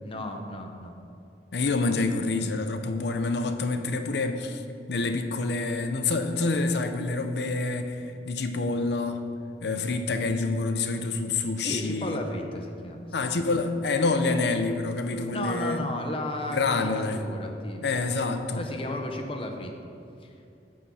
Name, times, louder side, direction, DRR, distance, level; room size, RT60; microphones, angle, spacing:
voice 1, 0.0-1.0 11.6-13.3 15.3-18.1 18.5-19.7 20.2-20.3, left 1 dB, 30° left, 3 dB, 0.7 m, -34 dB
voice 2, 1.5-4.6 4.9-9.2 9.6-12.2 13.1-15.8 16.5-17.2 17.8-18.6, left 3 dB, 70° left, 7 dB, 0.6 m, -27 dB
9.6 x 3.7 x 7.0 m, 2.6 s
head